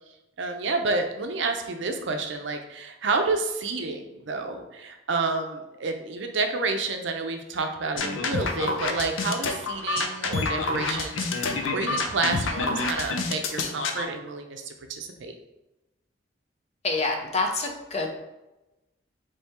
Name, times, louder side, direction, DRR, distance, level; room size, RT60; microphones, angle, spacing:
voice 1, 0.4-15.4, right 3 dB, 65° right, 5 dB, 0.5 m, -29 dB
sound 1, 8.0-14.0, left 3 dB, 80° left, 0.5 m, -28 dB
voice 2, 16.8-18.1, left 3 dB, 35° left, 2 dB, 0.6 m, -27 dB
3.6 x 3.3 x 4.2 m, 0.99 s
head